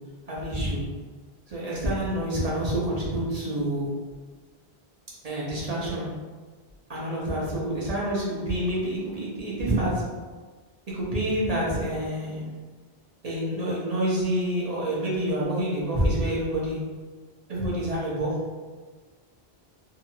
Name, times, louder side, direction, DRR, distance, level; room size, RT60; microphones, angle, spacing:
voice 1, 0.3-0.8 1.5-3.9 5.2-6.1 6.9-10.0 10.9-12.5 13.2-16.8 17.5-18.4, right 1 dB, 45° right, -6 dB, 0.8 m, -27 dB
2.8 x 2.4 x 2.7 m, 1.4 s
omnidirectional pair, 1.0 m